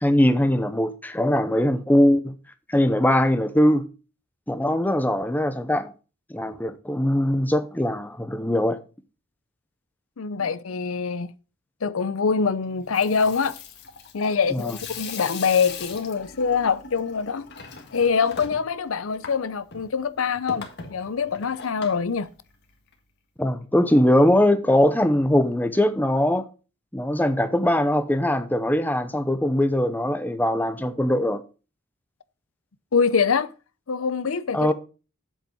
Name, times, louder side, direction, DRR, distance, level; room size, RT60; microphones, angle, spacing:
voice 1, 0.0-2.3 2.7-3.8 4.5-5.9 6.3-8.8 14.5-14.7 23.4-26.4 26.9-31.4 34.5-34.7, left 1 dB, 10° left, 0.8 m, -21 dB
voice 2, 10.2-11.3 11.8-13.6 14.1-17.5 17.9-22.3 32.9-33.5 33.9-34.7, left 5 dB, 80° left, 0.6 m, -24 dB
Water tap faucet / Sink (filling or washing), 12.7-22.9, left 5 dB, 55° left, 1.7 m, -41 dB
8.0 x 7.4 x 5.5 m
head